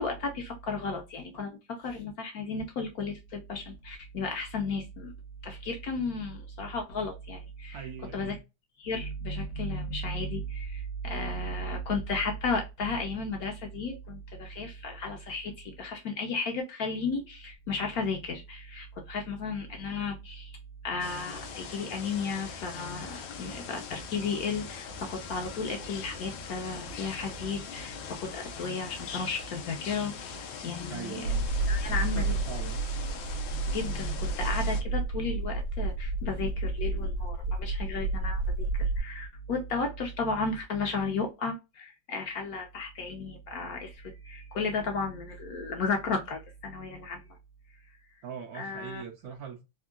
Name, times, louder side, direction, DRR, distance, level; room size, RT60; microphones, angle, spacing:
voice 1, 0.0-5.1 5.4-7.9 8.1-8.4 8.8-20.6 20.8-31.2 31.7-32.4 33.5-47.2 48.5-49.0, left 4 dB, 70° left, 0.9 m, -34 dB
voice 2, 7.7-8.4 30.9-31.5 31.8-32.8 48.2-49.6, right 7 dB, 70° right, 0.9 m, -41 dB
sound 1, 21.0-34.8, left 5 dB, 85° left, 1.3 m, -41 dB
sound 2, 31.2-39.0, right 3 dB, 85° right, 1.3 m, -30 dB
3.5 x 2.2 x 2.3 m
omnidirectional pair, 2.0 m